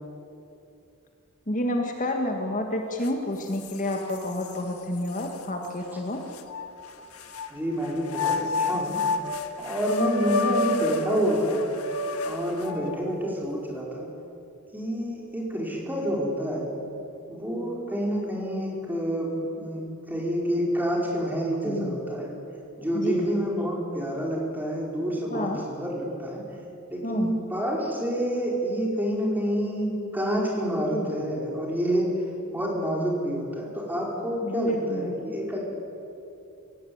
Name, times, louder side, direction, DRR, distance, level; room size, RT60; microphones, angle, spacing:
voice 1, 1.5-6.2 21.7-22.0 22.9-23.3 25.3-25.6 27.0-27.4 30.9-31.2 34.4-35.2, left 1 dB, 35° left, 3 dB, 1.8 m, -29 dB
sound 1, 3.0-3.1 3.6-4.5 5.2-5.3 6.4-7.5 8.1-13.0, left 3 dB, 80° left, 1.6 m, -29 dB
voice 2, 7.5-9.0 9.6-11.6 12.2-14.1 14.7-16.7 17.3-22.3 22.8-26.4 26.9-35.7, equal, 10° right, -2 dB, 4.8 m, -28 dB
23.0 x 17.5 x 9.5 m, 2.7 s
head